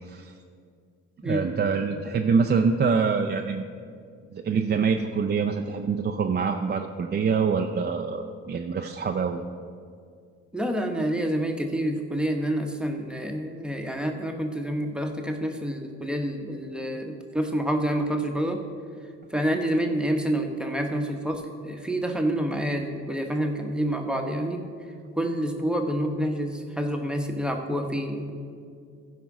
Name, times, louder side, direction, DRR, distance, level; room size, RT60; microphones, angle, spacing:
voice 1, 1.2-3.7 4.3-9.4, right 5 dB, 35° right, 4 dB, 0.5 m, -25 dB
voice 2, 10.5-18.6 19.3-24.6 25.1-28.3, equal, 5° right, 3 dB, 1.1 m, -28 dB
15.0 x 5.2 x 4.8 m, 2.2 s
cardioid pair, 90°, 30 cm